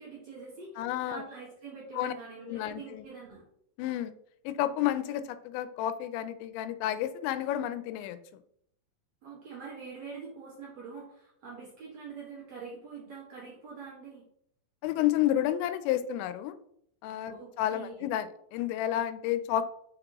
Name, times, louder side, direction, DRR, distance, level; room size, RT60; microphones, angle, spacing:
voice 1, 0.0-3.4 9.2-14.3 17.4-18.1, right 5 dB, 55° right, -6 dB, 2.1 m, -45 dB
voice 2, 0.8-1.2 1.9-2.1 2.5-3.1 3.8-4.1 4.5-8.2 14.8-16.6 17.0-19.6, left 12 dB, 85° left, 11 dB, 2.8 m, -30 dB
6.1 x 5.2 x 3.0 m, 0.70 s
omnidirectional pair, 5.1 m